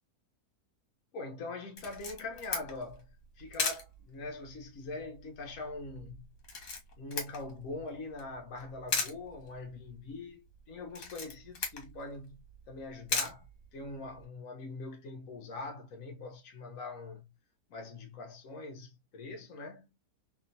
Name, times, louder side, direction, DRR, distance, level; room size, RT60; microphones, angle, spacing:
voice 1, 1.1-6.3 7.0-17.4 17.7-19.9, left 3 dB, 60° left, 1.3 m, -43 dB
Camera, 1.8-14.3, left 4 dB, 75° left, 1.6 m, -40 dB
3.5 x 2.5 x 2.6 m
omnidirectional pair, 1.7 m